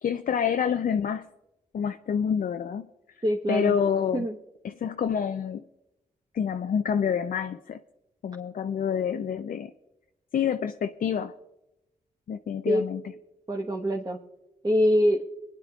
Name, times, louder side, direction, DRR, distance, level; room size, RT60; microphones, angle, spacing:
voice 1, 0.0-1.3 1.7-2.9 3.5-4.3 4.6-5.6 6.3-7.8 8.2-9.7 10.3-11.3 12.3-13.0, left 7 dB, 65° left, 8 dB, 0.5 m, -27 dB
voice 2, 3.2-3.8 4.1-4.3 12.7-12.8 13.5-14.2 14.6-15.2, equal, 25° right, 0 dB, 1.2 m, -24 dB
26.5 x 9.7 x 2.4 m, 0.95 s
cardioid pair, 45°, 15 cm